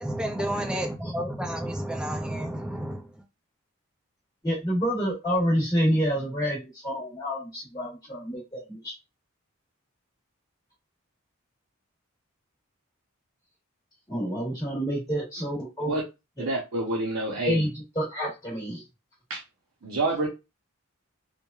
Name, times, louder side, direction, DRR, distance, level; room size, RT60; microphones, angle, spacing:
voice 1, 0.0-3.2, right 1 dB, 5° right, 0.3 m, -31 dB
voice 2, 4.4-8.9 14.1-15.9 16.4-16.5 17.4-18.8, equal, 20° left, 0.9 m, -28 dB
voice 3, 16.4-17.7 19.3-19.4 19.8-20.3, right 2 dB, 85° right, 0.7 m, -27 dB
2.9 x 2.1 x 2.3 m
head